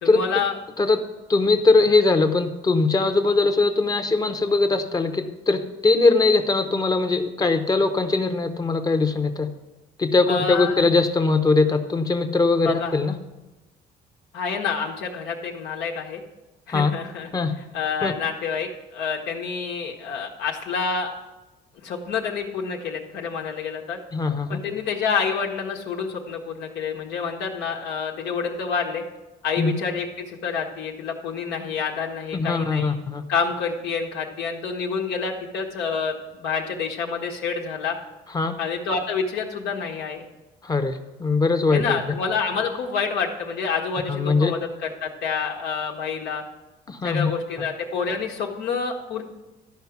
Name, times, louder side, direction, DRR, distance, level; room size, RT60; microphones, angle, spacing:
voice 1, 0.0-0.5 10.3-10.8 12.6-13.0 14.3-16.2 16.7-17.3 17.7-21.1 21.8-24.0 24.5-29.0 29.4-32.9 33.3-38.0 38.6-40.3 41.7-46.4 47.0-49.2, left 5 dB, 80° left, 1 dB, 1.3 m, -28 dB
voice 2, 1.3-9.5 10.0-13.2 16.7-16.9 17.3-17.5 18.0-18.1 24.1-24.6 29.6-29.7 32.3-33.2 38.3-38.6 40.6-42.0 44.1-44.5 46.9-47.3, left 3 dB, 20° left, 8 dB, 0.8 m, -21 dB
12.5 x 5.1 x 5.9 m, 1.0 s
cardioid pair, 110°, 17 cm